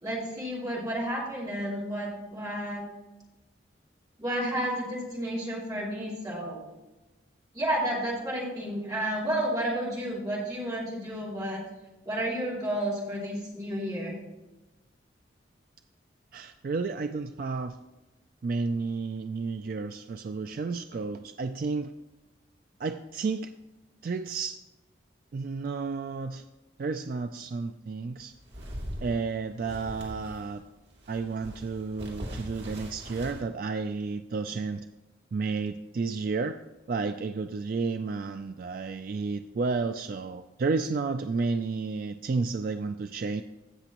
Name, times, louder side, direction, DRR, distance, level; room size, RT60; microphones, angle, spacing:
voice 1, 0.0-2.8 4.2-6.7 7.5-11.6 12.1-14.2, right 1 dB, 20° right, -5 dB, 2.6 m, -31 dB
voice 2, 16.3-17.8 18.4-21.9 22.8-23.5 24.0-24.6 25.3-26.4 26.8-28.3 29.0-30.6 31.1-34.8 35.3-36.6 36.9-43.4, right 4 dB, 50° right, 8 dB, 0.3 m, -31 dB
sound 1, 28.2-30.6 30.9-33.4, equal, 65° right, 2.4 m, -41 dB
16.0 x 6.0 x 3.0 m, 1.1 s
head